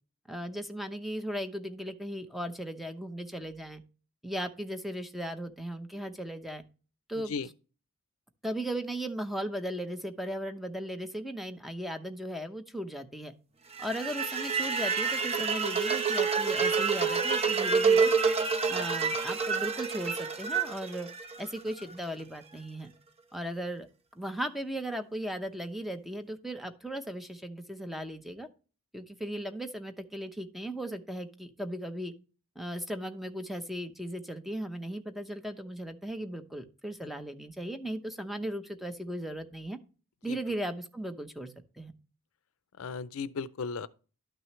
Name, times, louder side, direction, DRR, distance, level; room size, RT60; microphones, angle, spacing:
voice 1, 0.3-3.8 4.2-6.6 7.1-7.3 8.4-13.3 13.8-18.1 18.7-21.1 21.4-22.9 23.3-23.9 24.2-28.5 28.9-32.1 32.6-39.8 40.2-41.9, equal, ahead, 0.7 m, -37 dB
sound 1, 13.7-21.8, right 5 dB, 30° right, 0.9 m, -28 dB
voice 2, 42.8-43.9, left 5 dB, 65° left, 0.4 m, -35 dB
12.0 x 6.2 x 3.1 m
head